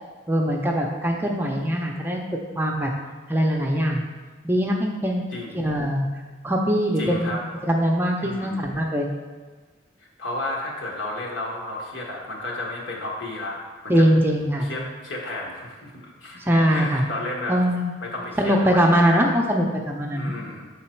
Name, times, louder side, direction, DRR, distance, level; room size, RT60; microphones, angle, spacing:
voice 1, 0.3-2.2 2.6-2.9 3.3-4.0 4.4-5.2 5.5-6.1 6.4-7.3 7.6-9.1 13.9-14.7 16.5-17.0 17.5-17.9 18.4-20.3, equal, 10° right, 0 dB, 0.5 m, -21 dB
voice 2, 5.3-5.7 7.0-7.4 8.2-8.7 10.2-13.6 13.8-14.0 14.6-16.4 16.7-17.6 18.0-19.3 20.1-20.7, left 2 dB, 85° left, -2 dB, 1.3 m, -32 dB
6.0 x 3.9 x 4.3 m, 1.4 s
head